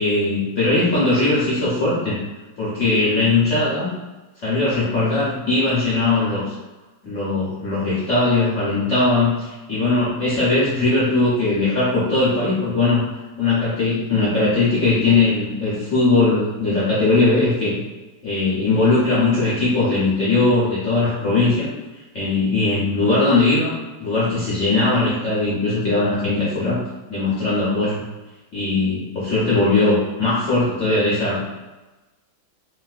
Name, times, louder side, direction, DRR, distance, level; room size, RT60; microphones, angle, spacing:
voice 1, 0.0-2.2 2.6-3.9 4.4-6.5 7.0-13.1 13.4-17.8 18.2-21.7 22.1-23.7 24.0-26.8 27.1-28.0 28.5-31.6, left 3 dB, 65° left, -8 dB, 0.7 m, -19 dB
3.5 x 2.3 x 2.3 m, 1.1 s
omnidirectional pair, 2.2 m